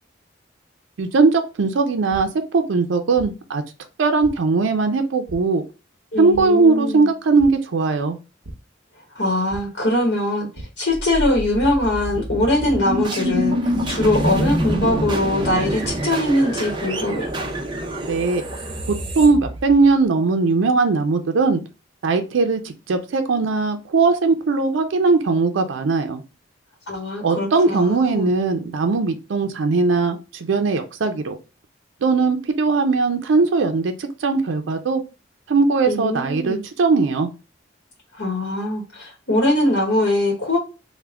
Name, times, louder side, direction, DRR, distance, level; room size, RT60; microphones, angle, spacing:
voice 1, 1.0-3.6 4.0-5.6 6.2-8.2 18.1-18.4 18.9-21.6 22.0-26.2 27.2-31.4 32.0-35.0 35.5-37.3, right 4 dB, 85° right, 6 dB, 0.4 m, -19 dB
sound 1, 2.1-2.2 3.2-3.3 4.2-4.3 5.3-5.4 6.3-6.4 7.4-7.5 7.9-8.1 8.4-8.5 9.5-9.6 10.5-10.7 11.6-11.7 12.7-12.8 13.7-13.8 14.8-14.9 15.6-15.9, right 1 dB, 60° right, 0.8 m, -36 dB
voice 2, 6.1-7.1 9.1-10.5 10.8-13.6 13.9-17.3 26.9-28.3 35.9-36.6 38.2-40.6, left 1 dB, 65° left, 0 dB, 0.9 m, -22 dB
sound 2, 10.9-20.0, equal, 25° right, 0.5 m, -26 dB
3.4 x 2.1 x 3.4 m, 0.30 s
head